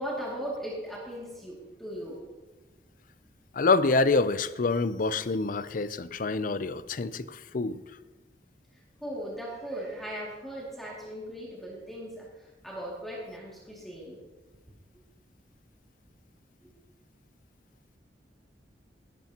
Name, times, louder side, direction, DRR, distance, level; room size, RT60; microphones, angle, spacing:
voice 1, 0.0-2.2 8.7-14.2 14.9-15.0 16.6-16.7, equal, ahead, -6 dB, 2.3 m, -38 dB
voice 2, 3.5-7.8, left 3 dB, 50° left, 14 dB, 0.5 m, -26 dB
17.5 x 12.0 x 2.9 m, 1.2 s
head